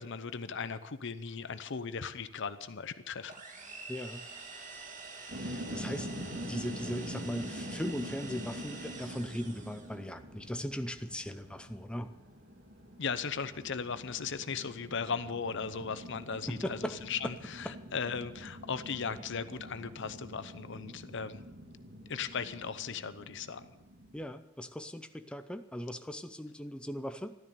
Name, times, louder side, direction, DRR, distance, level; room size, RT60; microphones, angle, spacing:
voice 1, 0.0-3.3 13.0-21.4 22.1-23.7, left 6 dB, 65° left, 13 dB, 0.8 m, -37 dB
sound 1, 3.3-10.0, right 3 dB, 40° right, 2.2 m, -47 dB
voice 2, 3.9-4.3 5.2-6.1 6.4-12.1 16.5-17.0 17.6-17.7 24.1-27.4, equal, 5° left, 8 dB, 0.6 m, -39 dB
sound 2, 5.3-24.3, equal, 55° right, 2.6 m, -45 dB
14.0 x 12.5 x 6.9 m, 0.96 s
head